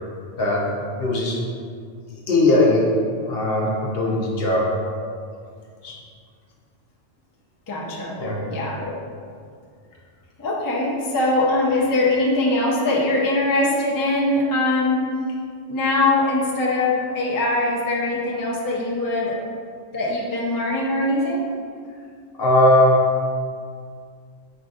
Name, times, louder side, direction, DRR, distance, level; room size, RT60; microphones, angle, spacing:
voice 1, 0.4-1.4 2.1-2.9 3.2-4.7 5.8-6.0 8.2-8.4 22.4-23.1, left 1 dB, 55° left, -3 dB, 0.8 m, -19 dB
voice 2, 7.7-8.2 8.4-9.0 10.4-15.1 15.7-19.4 19.9-21.5, left 2 dB, 30° left, -5 dB, 0.4 m, -22 dB
5.3 x 3.8 x 2.4 m, 2.1 s
omnidirectional pair, 1.3 m